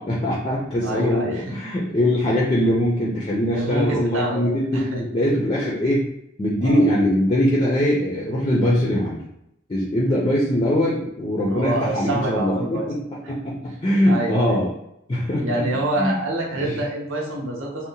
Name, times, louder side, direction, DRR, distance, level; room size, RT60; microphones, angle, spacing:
voice 1, 0.0-6.1 6.4-9.2 9.7-14.7 15.1-15.6 16.0-16.2 16.5-16.8, left 1 dB, 25° left, -4 dB, 0.4 m, -22 dB
voice 2, 0.8-1.4 1.9-2.0 2.6-2.7 3.5-5.0 6.6-6.8 11.5-12.9 14.1-14.6 15.4-17.9, right 1 dB, 85° right, -2 dB, 0.7 m, -27 dB
2.7 x 2.0 x 2.6 m, 0.79 s
head